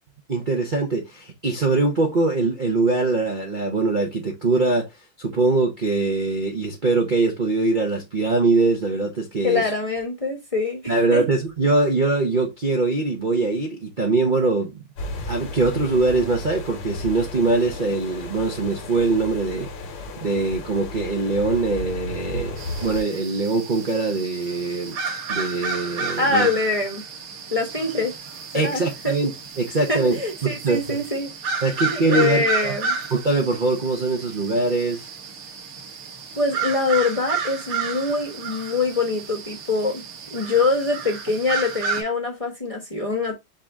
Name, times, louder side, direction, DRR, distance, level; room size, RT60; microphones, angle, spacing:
voice 1, 0.3-4.9 5.2-9.7 10.9-14.8 15.3-19.7 20.2-25.0 25.3-26.5 28.5-31.0 31.6-32.8 33.1-35.1, right 3 dB, 75° right, 0.4 m, -22 dB
voice 2, 9.4-11.2 26.2-27.0 27.5-28.1 28.5-29.2 29.9-31.3 31.9-33.0 36.4-40.0 40.3-43.4, left 3 dB, 25° left, 0.7 m, -24 dB
sound 1, 15.0-23.0, left 1 dB, 80° left, 2.1 m, -34 dB
sound 2, 22.6-42.0, right 4 dB, 90° right, 2.0 m, -32 dB
5.4 x 2.7 x 3.5 m
omnidirectional pair, 2.3 m